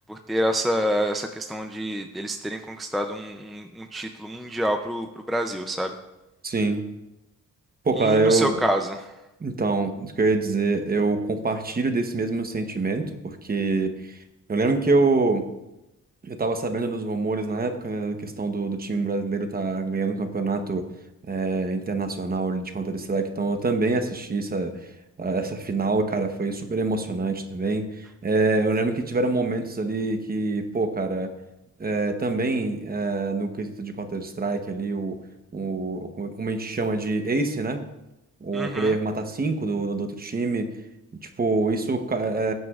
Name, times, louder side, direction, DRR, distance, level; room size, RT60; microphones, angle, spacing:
voice 1, 0.1-5.9 8.0-9.1 38.5-39.0, equal, ahead, 5 dB, 0.4 m, -27 dB
voice 2, 6.4-6.8 7.8-8.6 9.4-14.2 14.5-15.5 16.2-20.9 21.2-24.9 25.2-31.3 31.8-35.2 35.5-37.8 38.4-40.7 41.2-42.5, right 3 dB, 30° right, 6 dB, 1.0 m, -25 dB
18.0 x 9.3 x 2.4 m, 0.95 s
wide cardioid pair, 145°, 31 cm